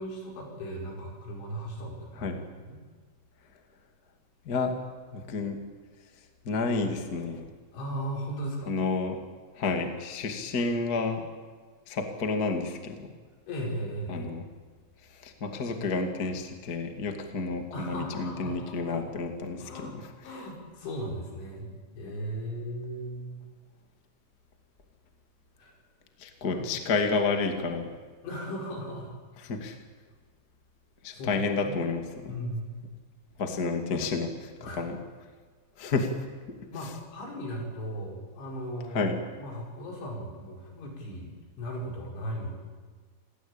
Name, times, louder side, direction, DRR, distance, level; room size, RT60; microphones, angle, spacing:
voice 1, 0.0-2.8 7.7-8.7 13.5-14.3 17.7-19.0 19.6-20.0 20.2-23.4 25.6-25.7 26.2-26.7 28.2-29.1 31.1-31.3 31.7-31.8 32.3-32.8 34.6-34.8 36.7-42.6, equal, 70° left, 0 dB, 7.9 m, -37 dB
voice 2, 5.1-5.6 6.4-7.5 8.7-9.2 9.5-11.3 11.9-12.9 14.1-14.4 15.2-20.0 26.2-27.9 29.4-29.7 31.0-32.3 33.4-34.5 34.8-35.0 35.8-36.2 38.9-39.2, left 4 dB, 35° left, 5 dB, 1.5 m, -30 dB
28.0 x 18.5 x 8.9 m, 1.5 s
omnidirectional pair, 5.6 m